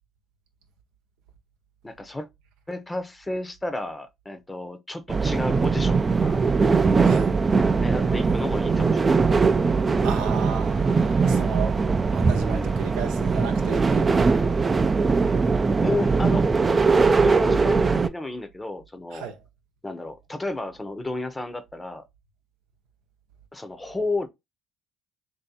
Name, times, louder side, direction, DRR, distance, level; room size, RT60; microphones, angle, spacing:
voice 1, 1.8-2.3 2.7-6.4 7.8-9.3 12.4-12.8 15.8-16.5 17.2-19.3 19.8-22.0 23.5-24.3, left 2 dB, 15° left, 0.8 m, -32 dB
sound 1, 5.1-18.1, right 4 dB, 30° right, 0.4 m, -21 dB
voice 2, 7.0-7.3 10.0-11.8 12.1-14.2 19.1-19.4, right 7 dB, 85° right, 0.7 m, -34 dB
3.1 x 2.8 x 4.1 m
supercardioid pair, 65°, 0 cm